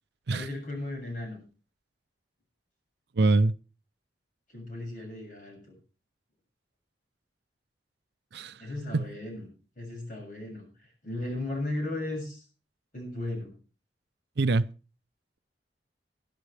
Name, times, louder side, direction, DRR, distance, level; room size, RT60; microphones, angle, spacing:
voice 1, 0.3-1.4 4.5-5.8 8.6-12.4 12.9-13.5, left 2 dB, 50° left, 7.0 m, -36 dB
voice 2, 3.2-3.6 8.3-8.5 8.9-9.1 14.4-14.7, right 3 dB, 65° right, 0.6 m, -24 dB
21.0 x 11.5 x 3.4 m
head